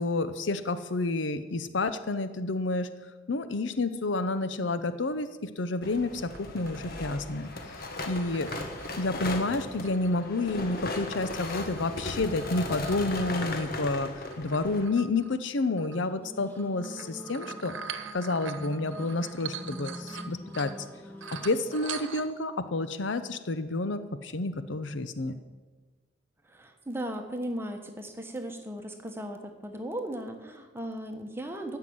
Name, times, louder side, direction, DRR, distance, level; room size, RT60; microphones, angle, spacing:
voice 1, 0.0-2.9 3.3-7.5 8.1-8.5 9.0-17.7 18.1-20.7 21.3-25.3, left 2 dB, 70° left, 11 dB, 0.7 m, -30 dB
sound 1, 5.8-14.8, left 2 dB, 50° left, 1.5 m, -37 dB
sound 2, 6.3-10.6 10.9-15.3 15.8-16.0 16.5-20.9 21.2-22.4, right 7 dB, 80° right, 1.0 m, -44 dB
sound 3, 16.0-22.3, equal, 10° left, 1.1 m, -45 dB
voice 2, 26.5-31.8, right 1 dB, 10° right, 4 dB, 1.3 m, -37 dB
14.0 x 5.8 x 9.4 m, 1.3 s
head